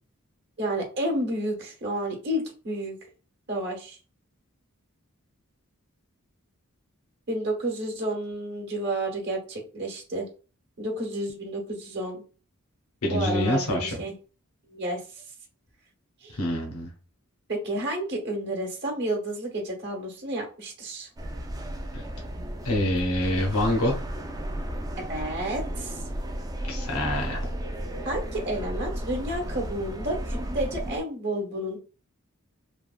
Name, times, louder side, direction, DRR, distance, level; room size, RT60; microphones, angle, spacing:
voice 1, 0.6-3.0 3.5-4.0 7.3-10.3 10.8-12.2 13.1-14.1 14.7-15.2 16.2-16.4 17.5-21.1 25.0-26.0 28.0-31.8, right 1 dB, 55° right, 1 dB, 1.0 m, -31 dB
voice 2, 13.0-14.0 16.3-16.9 21.9-22.0 22.6-23.9 26.7-27.5, left 1 dB, 75° left, 1 dB, 0.8 m, -26 dB
sound 1, 21.2-31.0, right 1 dB, 15° right, 0.3 m, -34 dB
3.2 x 2.2 x 2.4 m, 0.36 s
head